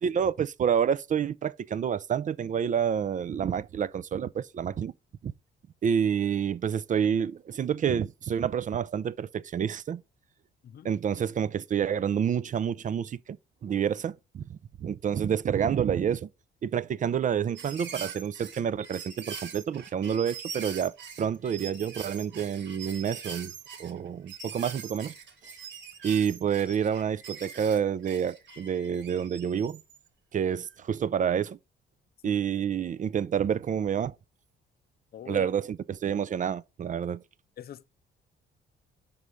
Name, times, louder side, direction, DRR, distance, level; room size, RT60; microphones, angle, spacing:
voice 1, 0.0-4.9 5.2-5.3 5.8-10.0 10.8-13.4 13.6-16.3 16.6-23.5 23.8-25.2 26.0-29.8 30.3-31.6 32.2-34.2 35.3-37.2, right 8 dB, 40° right, 0.4 m, -28 dB
sound 1, 17.5-30.0 30.6-30.7, right 6 dB, 70° right, 1.7 m, -43 dB
voice 2, 35.1-35.5 37.6-37.9, left 10 dB, 50° left, 0.5 m, -43 dB
5.3 x 4.8 x 5.6 m
cardioid pair, 90°, 20 cm